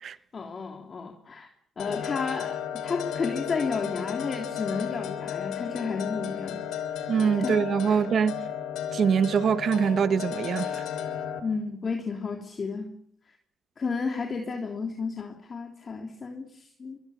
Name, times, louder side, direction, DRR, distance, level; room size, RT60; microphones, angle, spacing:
voice 1, 0.3-1.5 1.8-6.7 7.4-7.6 7.9-8.0 11.4-12.9 13.8-17.0, left 4 dB, 40° left, 3.3 m, -32 dB
sound 1, 1.8-11.4, left 9 dB, 85° left, 3.3 m, -34 dB
voice 2, 7.1-8.5 8.9-10.8, right 7 dB, 55° right, 1.1 m, -24 dB
25.0 x 20.5 x 7.3 m
cardioid pair, 90°, 0 cm